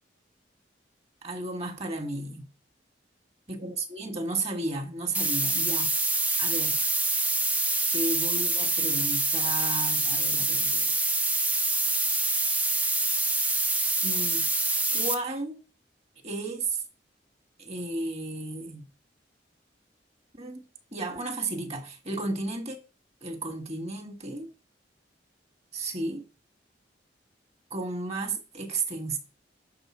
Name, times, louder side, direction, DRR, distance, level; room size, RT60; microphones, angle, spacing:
voice 1, 1.2-2.5 3.5-5.9 6.4-6.8 7.9-10.9 14.0-14.6 14.9-15.6 16.2-16.8 17.6-18.9 20.4-20.6 20.9-22.8 23.2-24.5 25.7-26.2 27.7-29.2, right 2 dB, 35° right, 1.7 m, -33 dB
sound 1, 5.1-15.1, right 2 dB, 10° right, 0.5 m, -26 dB
10.5 x 3.9 x 6.2 m
head